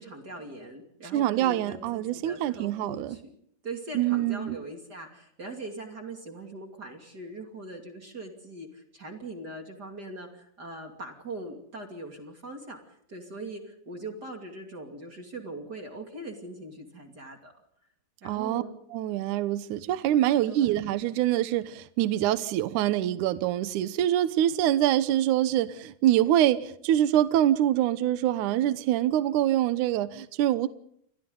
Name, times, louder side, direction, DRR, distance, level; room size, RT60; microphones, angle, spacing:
voice 1, 0.0-3.3 3.6-17.5 18.2-18.8 20.4-20.8, right 2 dB, 30° right, 2.4 m, -41 dB
voice 2, 1.1-3.2 3.9-4.6 18.2-18.6 18.9-30.7, right 12 dB, 75° right, 1.8 m, -25 dB
29.5 x 24.0 x 3.9 m
omnidirectional pair, 4.9 m